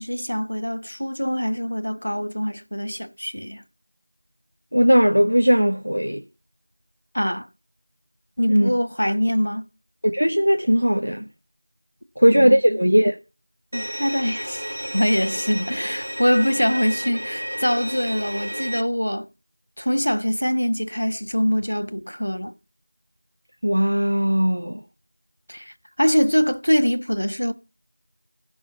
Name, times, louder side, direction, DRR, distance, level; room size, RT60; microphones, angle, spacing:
voice 1, 0.0-3.6 7.1-7.5 8.4-9.7 12.3-12.8 13.7-14.6 14.9-19.3 19.8-22.5 25.5-27.5, equal, 70° left, 1.3 m, -23 dB
voice 2, 4.7-6.2 8.5-8.7 10.0-11.3 12.2-13.2 23.6-24.8, equal, 75° right, 1.4 m, -18 dB
Bowed string instrument, 13.7-18.8, equal, 45° right, 1.2 m, -32 dB
15.5 x 6.2 x 7.0 m
figure-of-eight pair, 180°, 0 cm